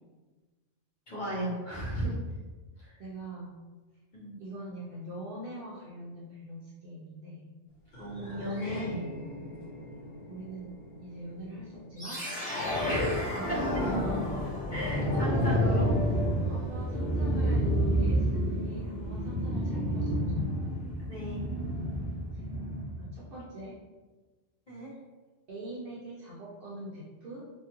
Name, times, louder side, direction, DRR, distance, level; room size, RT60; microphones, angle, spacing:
voice 1, 1.1-2.2 2.8-3.0 4.1-4.4 8.0-9.0 12.9-13.8 14.7-15.9 21.1-21.5 24.7-24.9, right 1 dB, 45° left, -7 dB, 0.9 m, -35 dB
voice 2, 3.0-3.5 4.4-7.5 9.4-9.6 10.3-10.7 11.0-12.3 13.1-13.9 14.4-14.6 15.1-15.6 16.2-20.5 21.9-22.4 23.0-23.8 25.5-27.4, right 1 dB, 60° right, -5 dB, 0.6 m, -43 dB
sound 1, 7.9-12.4, equal, 65° left, 1.2 m, -44 dB
sound 2, 12.0-23.1, equal, 10° left, 0.4 m, -29 dB
3.0 x 2.3 x 2.9 m, 1.3 s
omnidirectional pair, 1.3 m